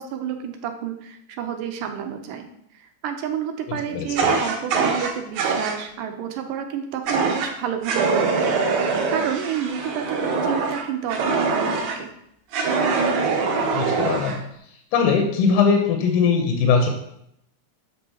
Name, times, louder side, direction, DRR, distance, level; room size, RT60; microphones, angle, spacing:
voice 1, 0.0-2.5 3.0-12.1, right 8 dB, 90° right, 5 dB, 2.3 m, -30 dB
voice 2, 3.9-4.3 13.7-14.4 14.9-16.9, left 5 dB, 75° left, 3 dB, 2.1 m, -20 dB
Fire, 4.2-5.8 7.1-7.5 7.8-12.0 12.5-14.4, right 4 dB, 70° right, 2.1 m, -23 dB
7.9 x 6.1 x 2.9 m, 0.74 s
omnidirectional pair, 3.9 m